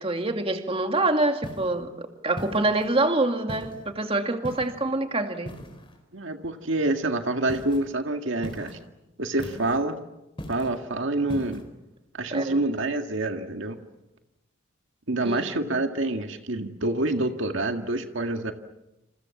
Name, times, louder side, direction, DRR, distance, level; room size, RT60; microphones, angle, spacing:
voice 1, 0.0-5.5 12.3-12.6 15.2-15.8, right 2 dB, 30° right, 5 dB, 2.4 m, -26 dB
sound 1, 1.4-1.8 2.4-2.9 3.5-3.9 4.4-4.9 5.5-6.0 7.5-7.8 8.4-8.8 9.4-9.9 10.4-10.8 11.3-11.6, equal, 25° left, 4.3 m, -39 dB
voice 2, 6.1-8.8 9.2-10.0 10.5-11.6 12.1-13.8 15.1-18.5, right 2 dB, 65° right, 5 dB, 1.9 m, -27 dB
28.5 x 28.5 x 7.2 m, 0.97 s
head